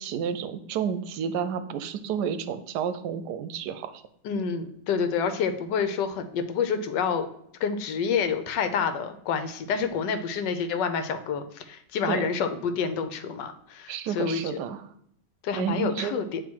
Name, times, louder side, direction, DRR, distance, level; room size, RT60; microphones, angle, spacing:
voice 1, 0.0-4.0 12.1-12.3 13.9-14.8 15.5-16.2, right 8 dB, 75° right, 11 dB, 1.1 m, -30 dB
voice 2, 4.2-7.3 7.6-14.4 15.4-16.4, left 6 dB, 85° left, 8 dB, 1.3 m, -28 dB
9.0 x 3.0 x 4.5 m, 0.70 s
omnidirectional pair, 1.9 m